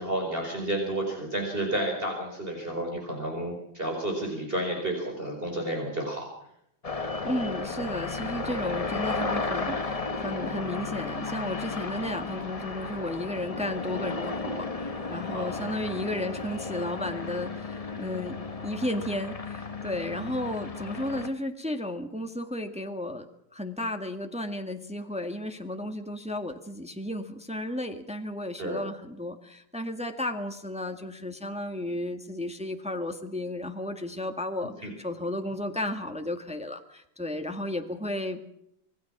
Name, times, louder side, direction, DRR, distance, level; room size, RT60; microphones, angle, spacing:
voice 1, 0.0-6.3 15.3-15.8 28.6-28.8 34.8-34.9, right 1 dB, 25° right, 1 dB, 4.8 m, -31 dB
sound 1, 6.8-21.3, left 4 dB, 25° left, 0.9 m, -34 dB
voice 2, 7.2-18.4 18.6-23.3 23.5-38.4, left 1 dB, 5° right, 5 dB, 1.6 m, -33 dB
26.5 x 19.5 x 6.1 m, 0.76 s
omnidirectional pair, 2.1 m